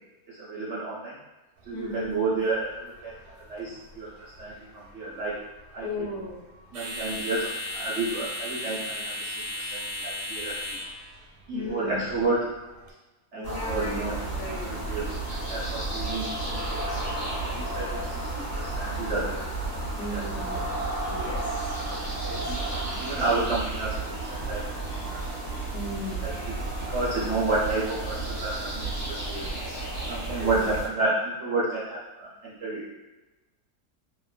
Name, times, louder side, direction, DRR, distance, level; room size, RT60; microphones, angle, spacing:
voice 1, 0.3-1.2 1.6-5.3 5.7-6.1 6.7-10.8 11.5-12.5 13.3-14.2 14.5-19.4 20.0-20.6 22.3-24.6 24.9-25.2 26.2-26.5 26.9-29.5 30.1-32.9, right 3 dB, 65° right, -7 dB, 0.7 m, -31 dB
sound 1, 1.6-12.9, left 1 dB, 80° right, 1.1 m, -38 dB
voice 2, 1.7-2.1 5.8-6.4 11.5-12.0 13.3-14.7 20.0-20.7 21.0-23.0 25.7-26.3 30.4-30.8, left 2 dB, 80° left, -4 dB, 1.2 m, -37 dB
sound 2, 13.4-30.9, right 2 dB, 40° left, 1.2 m, -32 dB
2.8 x 2.1 x 2.3 m, 1.1 s
omnidirectional pair, 1.7 m